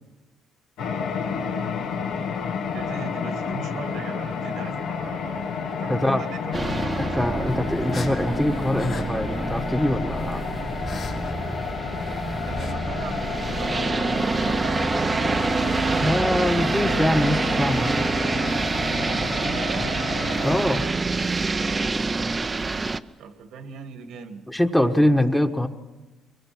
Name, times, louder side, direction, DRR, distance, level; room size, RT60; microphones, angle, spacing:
sound 1, 0.8-20.6, left 6 dB, 90° left, 2.0 m, -31 dB
voice 1, 2.7-7.5 7.9-8.2 12.4-14.9 19.5-20.1 23.2-24.4 24.7-25.1, right 5 dB, 85° right, 7 dB, 2.1 m, -39 dB
voice 2, 5.9-6.2 7.0-10.5 16.0-18.0 20.4-20.8 24.5-25.7, left 1 dB, 5° left, 5 dB, 1.3 m, -23 dB
sound 2, 6.5-23.0, right 3 dB, 25° right, 0.6 m, -26 dB
sound 3, 6.9-12.7, left 5 dB, 55° left, 2.8 m, -42 dB
23.0 x 22.5 x 6.1 m, 1.2 s
cardioid pair, 100°, 0 cm